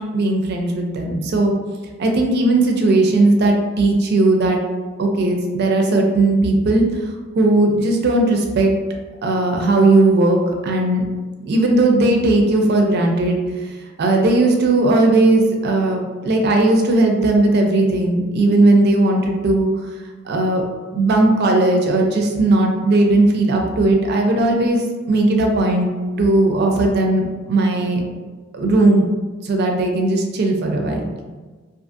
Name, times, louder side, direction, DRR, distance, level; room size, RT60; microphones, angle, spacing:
voice 1, 0.1-1.5 2.0-4.6 5.0-6.8 7.4-8.7 9.2-11.0 11.4-13.4 14.0-19.7 20.3-20.6 20.9-25.9 26.2-28.0 28.5-29.1 29.4-31.1, right 2 dB, 55° right, 2 dB, 0.4 m, -17 dB
2.5 x 2.5 x 2.4 m, 1.3 s
head